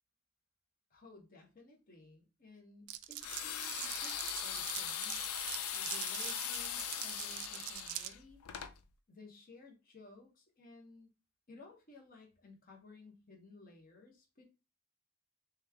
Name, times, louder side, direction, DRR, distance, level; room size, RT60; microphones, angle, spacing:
voice 1, 0.9-5.3 5.7-8.4 9.1-11.1 11.5-14.4, left 3 dB, 40° left, 2 dB, 1.0 m, -57 dB
Glass, 2.9-8.1, right 14 dB, 70° right, 0.4 m, -43 dB
sound 1, 3.2-8.7, left 10 dB, 80° left, 0.4 m, -40 dB
3.4 x 3.1 x 3.5 m, 0.29 s
head